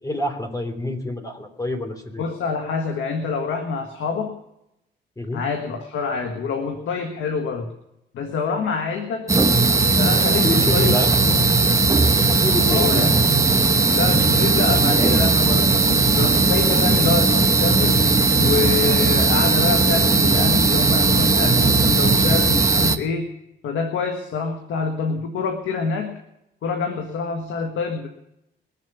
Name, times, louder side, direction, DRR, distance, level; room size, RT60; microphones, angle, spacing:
voice 1, 0.0-2.2 5.2-5.4 10.3-11.4 12.2-13.1, left 1 dB, 15° left, 5 dB, 3.3 m, -26 dB
voice 2, 2.2-4.4 5.3-7.7 8.1-9.4 10.0-10.9 12.7-13.1 13.9-18.0 18.4-23.3 23.6-26.2 26.6-28.1, left 5 dB, 80° left, 4 dB, 1.5 m, -26 dB
sound 1, 9.3-23.0, right 3 dB, 15° right, 0.9 m, -17 dB
21.5 x 7.5 x 6.8 m, 0.86 s
cardioid pair, 90°, 20 cm